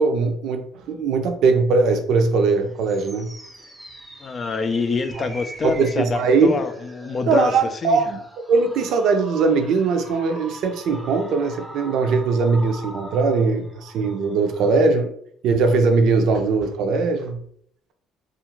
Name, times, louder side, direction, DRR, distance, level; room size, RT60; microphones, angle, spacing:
voice 1, 0.0-3.3 5.2-5.3 5.6-6.5 7.3-8.2 8.5-15.1 15.4-17.4, right 4 dB, 65° right, 6 dB, 0.5 m, -20 dB
sound 1, 2.4-14.8, equal, ahead, 0.6 m, -42 dB
voice 2, 4.2-7.5 7.8-8.0, left 4 dB, 40° left, 8 dB, 0.3 m, -26 dB
2.4 x 2.4 x 3.0 m, 0.64 s
supercardioid pair, 80°, 0 cm